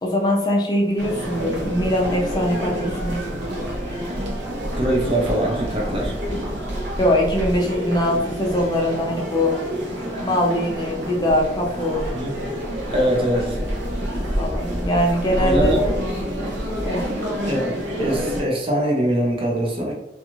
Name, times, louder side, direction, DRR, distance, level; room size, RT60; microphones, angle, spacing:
voice 1, 0.0-3.2 7.0-9.5 10.2-12.1 14.4-15.8 16.8-17.0, left 1 dB, 25° left, -1 dB, 0.4 m, -22 dB
sound 1, 1.0-18.4, equal, 85° right, 0.6 m, -29 dB
sound 2, 1.5-17.4, equal, 45° right, 1.0 m, -34 dB
voice 2, 4.7-6.1 12.1-12.3 12.9-13.6 15.4-15.8 17.5-17.7 18.0-19.9, right 1 dB, 30° right, -1 dB, 0.5 m, -22 dB
2.4 x 2.3 x 2.9 m, 0.82 s
head